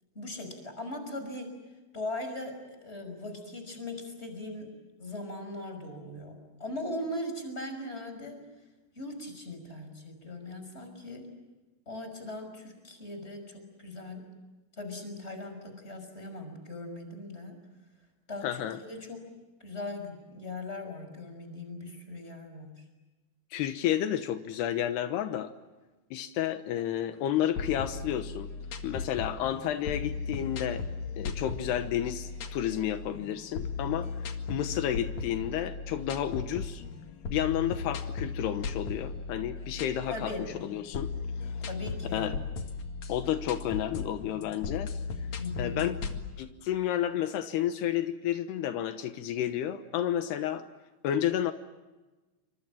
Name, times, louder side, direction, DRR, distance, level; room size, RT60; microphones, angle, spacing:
voice 1, 0.1-1.6 1.9-4.7 5.0-8.4 8.9-11.3 11.9-14.3 14.8-17.6 18.3-19.3 19.6-22.8 40.1-40.5 41.7-42.3 45.4-45.9, left 2 dB, 15° left, 6 dB, 5.7 m, -39 dB
voice 2, 18.4-18.8 23.5-25.5 26.1-28.5 28.8-30.8 31.2-34.1 34.5-36.8 37.3-40.3 40.6-41.1 42.1-42.3 43.1-44.9 45.6-45.9 46.4-50.6 51.0-51.5, left 11 dB, 80° left, 9 dB, 3.2 m, -31 dB
sound 1, 27.4-46.2, left 4 dB, 50° left, 2.9 m, -37 dB
28.5 x 25.5 x 7.4 m, 1.2 s
omnidirectional pair, 4.7 m